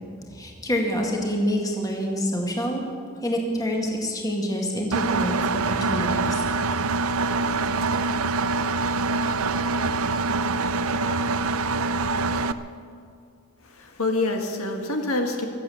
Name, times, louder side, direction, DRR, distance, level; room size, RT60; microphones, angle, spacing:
voice 1, 0.2-2.8 3.2-5.4 5.6-6.4, equal, 15° left, 0 dB, 2.0 m, -27 dB
Engine, 4.9-12.5, right 3 dB, 70° right, 0.6 m, -24 dB
voice 2, 13.6-15.5, left 2 dB, 70° left, 3 dB, 1.8 m, -26 dB
24.0 x 8.3 x 7.1 m, 2.4 s
head